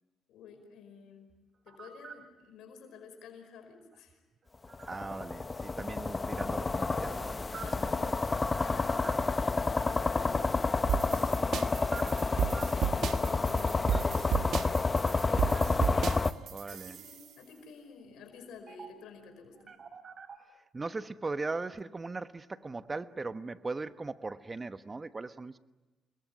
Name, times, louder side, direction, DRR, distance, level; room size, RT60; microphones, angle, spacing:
voice 1, 0.3-1.3 1.6-4.2 7.6-8.1 8.5-9.3 9.7-14.5 14.9-15.6 16.7-19.7, left 5 dB, 85° left, 5.1 m, -51 dB
sound 1, 1.3-2.2 3.9-5.1 7.1-9.5 10.9-12.8 13.9-14.1 14.5-15.3 15.5-16.1 16.7-16.8 18.7-19.1 19.4-20.4, right 6 dB, 45° right, 3.9 m, -48 dB
sound 2, 4.7-16.3, left 3 dB, 25° left, 1.0 m, -29 dB
voice 2, 4.9-8.2 14.3-14.5 16.5-17.0 20.7-25.6, right 3 dB, 25° right, 1.2 m, -39 dB
sound 3, 10.9-17.2, right 8 dB, 70° right, 1.5 m, -33 dB
28.5 x 22.0 x 9.4 m
cardioid pair, 90°, 0 cm